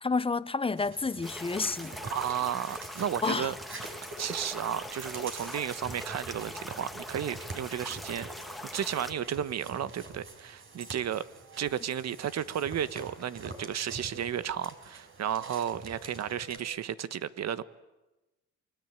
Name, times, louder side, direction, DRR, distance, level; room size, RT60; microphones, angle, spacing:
voice 1, 0.0-2.0 3.2-3.5, left 4 dB, 20° left, 1.0 m, -30 dB
sound 1, 0.8-16.6, right 3 dB, 45° right, 5.3 m, -46 dB
sound 2, 1.2-9.1, left 1 dB, ahead, 1.9 m, -42 dB
voice 2, 2.0-3.5 4.2-11.3 11.6-17.6, right 9 dB, 60° right, 1.4 m, -33 dB
sound 3, 8.0-16.9, right 7 dB, 80° right, 3.6 m, -57 dB
28.0 x 22.5 x 9.0 m
cardioid pair, 90°, 30 cm